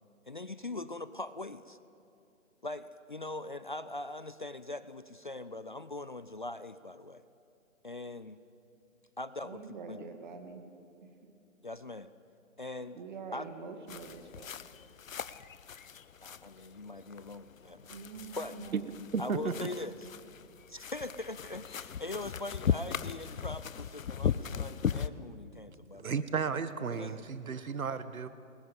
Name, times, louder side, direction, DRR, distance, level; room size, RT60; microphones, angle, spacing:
voice 1, 0.3-1.8 2.6-7.2 7.8-8.4 9.2-10.1 11.6-12.1 12.6-13.0 13.3-13.5 16.2-17.9 18.4-18.6 19.2-20.1 20.7-26.2 26.9-27.3, left 2 dB, 40° left, 13 dB, 0.4 m, -41 dB
voice 2, 9.4-10.7 11.0-11.3 13.0-14.5 17.9-18.9, right 5 dB, 35° right, 5 dB, 2.1 m, -45 dB
sound 1, 13.9-25.1, left 7 dB, 70° left, 0.8 m, -38 dB
voice 3, 19.1-19.6 26.0-28.3, right 5 dB, 85° right, 13 dB, 1.3 m, -33 dB
29.0 x 21.0 x 5.4 m, 2.6 s
hypercardioid pair, 165°, 41 cm